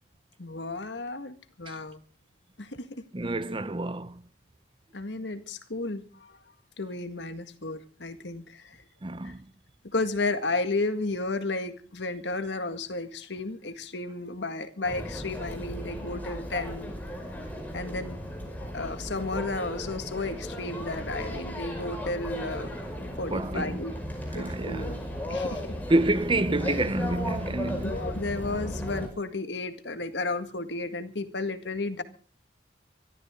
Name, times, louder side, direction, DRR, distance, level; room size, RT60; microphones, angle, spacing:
voice 1, 0.4-2.0 2.6-3.0 4.9-6.4 6.8-8.8 9.2-9.3 9.9-16.9 17.7-18.2 18.7-22.7 23.2-23.9 24.3-25.0 25.3-25.8 27.7-32.0, left 3 dB, 75° left, 1.8 m, -33 dB
voice 2, 3.1-4.2 9.0-9.4 23.3-23.8 24.3-25.0 25.9-28.0, right 2 dB, 30° right, 0.8 m, -28 dB
sound 1, 14.8-29.1, equal, 10° left, 5.3 m, -35 dB
24.0 x 13.5 x 3.7 m
head